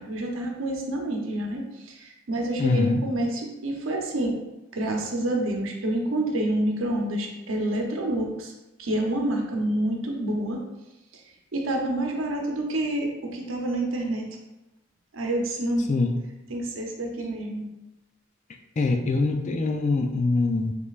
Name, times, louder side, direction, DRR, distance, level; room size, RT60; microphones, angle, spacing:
voice 1, 0.0-4.4 4.7-8.5 8.8-10.6 11.5-14.3 15.1-15.9 16.5-17.7, right 1 dB, 70° right, 1 dB, 0.8 m, -28 dB
voice 2, 2.6-3.0 15.9-16.1 18.8-20.7, left 3 dB, 35° left, 4 dB, 0.4 m, -23 dB
5.1 x 3.2 x 2.4 m, 1.0 s
head